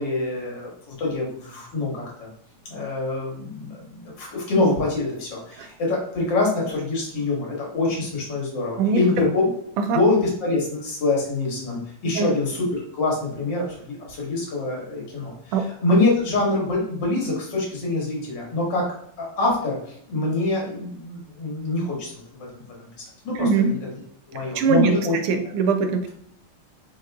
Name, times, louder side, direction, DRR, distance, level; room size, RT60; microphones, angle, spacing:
voice 1, 0.0-2.3 2.7-9.4 9.9-15.5 15.8-18.9 19.2-23.8 24.3-25.1, left 2 dB, 55° left, -2 dB, 2.1 m, -25 dB
voice 2, 23.3-23.7 24.5-24.9 25.2-26.1, right 4 dB, 85° right, 7 dB, 1.5 m, -21 dB
5.0 x 2.9 x 3.5 m, 0.67 s
omnidirectional pair, 2.4 m